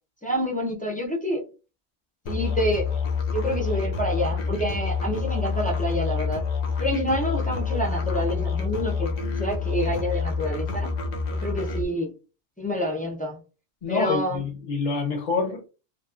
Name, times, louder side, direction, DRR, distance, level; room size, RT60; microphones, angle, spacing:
voice 1, 0.2-1.4 2.3-3.0 3.3-6.4 6.8-10.9 11.3-12.1 12.6-13.4 13.9-14.4, equal, 15° left, 0.3 m, -28 dB
Musical instrument, 2.3-11.9, left 5 dB, 80° left, 0.9 m, -27 dB
voice 2, 13.8-15.7, left 4 dB, 50° left, 0.6 m, -27 dB
2.8 x 2.2 x 2.3 m
omnidirectional pair, 1.1 m